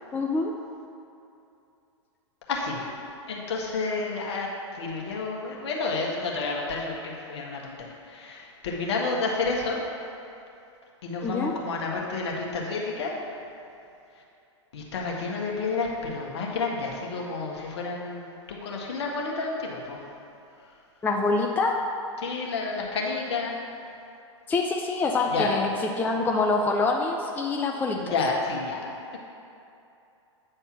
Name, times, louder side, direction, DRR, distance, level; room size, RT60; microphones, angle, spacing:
voice 1, 0.1-0.5 11.2-11.5 21.0-21.8 24.5-25.7 26.0-28.1, left 3 dB, 10° left, 1 dB, 0.5 m, -25 dB
voice 2, 2.5-2.9 3.3-9.8 11.0-13.4 14.7-20.1 20.7-20.8 22.2-23.6 25.3-25.5 28.0-29.2, left 3 dB, 60° left, -2 dB, 1.6 m, -30 dB
8.9 x 4.3 x 5.9 m, 2.7 s
figure-of-eight pair, 105°, 16 cm